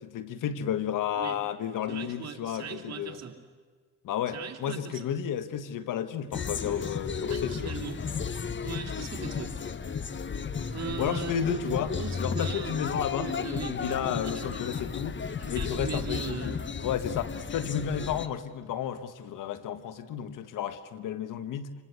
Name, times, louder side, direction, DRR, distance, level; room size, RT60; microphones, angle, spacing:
voice 1, 0.0-3.2 4.0-7.7 11.0-11.9 12.2-15.2 15.5-21.7, left 9 dB, 85° left, 1.4 m, -32 dB
voice 2, 1.9-3.4 4.3-5.1 7.3-8.0 8.6-9.6 10.7-12.8 13.1-15.0 15.4-16.6, right 7 dB, 55° right, 3.2 m, -39 dB
sound 1, 6.3-18.3, left 6 dB, 35° left, 1.2 m, -34 dB
27.0 x 25.0 x 8.3 m
cardioid pair, 75°, 31 cm